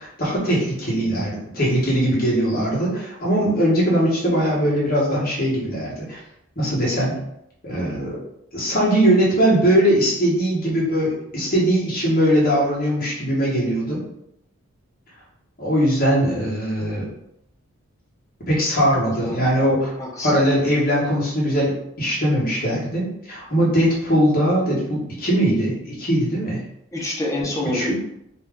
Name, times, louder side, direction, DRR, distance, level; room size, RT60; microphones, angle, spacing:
voice 1, 0.0-6.2 6.6-7.2 7.6-8.2 8.5-14.0 15.6-17.1 18.5-19.9 20.2-26.6 27.7-27.9, equal, 40° left, -5 dB, 1.2 m, -20 dB
voice 2, 20.0-20.4 26.9-27.9, left 1 dB, 15° left, -3 dB, 0.6 m, -26 dB
2.8 x 2.3 x 3.5 m, 0.78 s
head